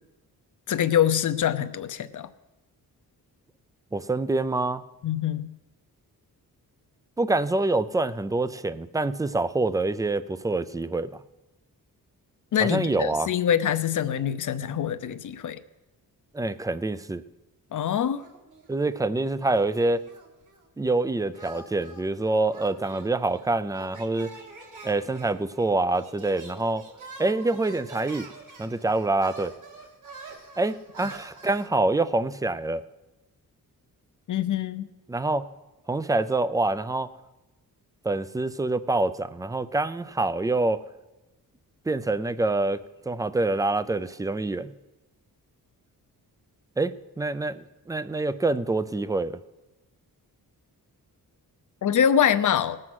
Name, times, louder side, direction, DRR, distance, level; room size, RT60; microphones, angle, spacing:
voice 1, 0.7-2.3 5.0-5.5 12.5-15.6 17.7-18.2 34.3-34.9 51.8-52.8, left 9 dB, 60° left, 12 dB, 0.7 m, -24 dB
voice 2, 3.9-4.8 7.2-11.1 12.6-13.3 16.3-17.2 18.7-20.0 20.8-24.3 24.8-26.9 27.2-28.3 28.6-29.5 30.6-32.8 35.1-35.4 35.9-37.1 38.0-40.8 41.9-44.7 46.8-49.4, right 2 dB, 10° right, 14 dB, 0.4 m, -26 dB
sound 1, 18.2-19.1 19.4-20.7 21.3-31.7, right 3 dB, 60° right, 2.1 m, -46 dB
18.5 x 7.6 x 6.2 m, 1.1 s
wide cardioid pair, 145°, 35 cm